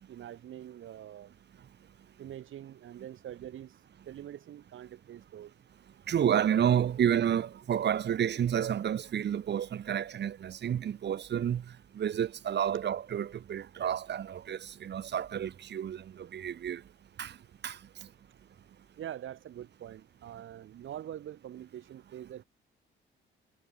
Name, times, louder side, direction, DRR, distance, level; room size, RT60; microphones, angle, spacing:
voice 1, 0.1-1.3 2.2-5.6 17.3-17.4 19.0-22.4, right 11 dB, 70° right, 4.6 m, -44 dB
voice 2, 6.1-11.6 11.9-16.8 17.2-17.3 17.6-17.8, right 9 dB, 55° right, 1.9 m, -30 dB
cardioid pair, 115°, 21 cm